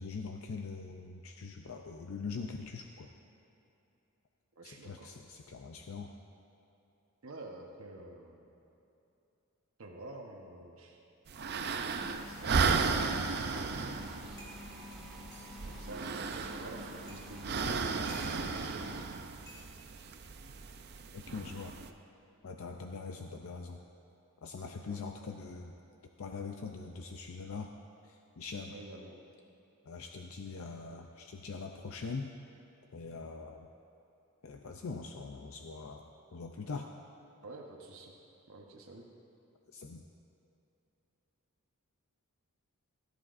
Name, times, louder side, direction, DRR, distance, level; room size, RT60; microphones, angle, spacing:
voice 1, 0.0-3.1 4.6-6.1 21.1-21.7 22.4-23.8 24.4-25.7 26.2-27.7 28.0-28.8 29.9-32.3 32.9-33.7 34.4-36.9 39.7-40.0, left 4 dB, 65° left, 4 dB, 0.5 m, -42 dB
voice 2, 4.6-5.1 7.2-8.5 9.8-11.0 11.8-14.6 15.6-18.9 24.8-25.0 28.7-29.2 37.4-38.1 38.5-39.0, right 2 dB, 70° right, 0 dB, 1.0 m, -48 dB
sound 1, 11.3-21.9, right 5 dB, 45° right, 0.5 m, -35 dB
sound 2, 12.0-19.0, left 1 dB, ahead, 1.8 m, -49 dB
sound 3, 14.4-15.5 16.3-16.4 17.1-17.2 17.6-18.7 19.5-19.7 20.8-21.1, right 1 dB, 15° left, 2.4 m, -53 dB
17.5 x 11.0 x 2.6 m, 2.9 s
head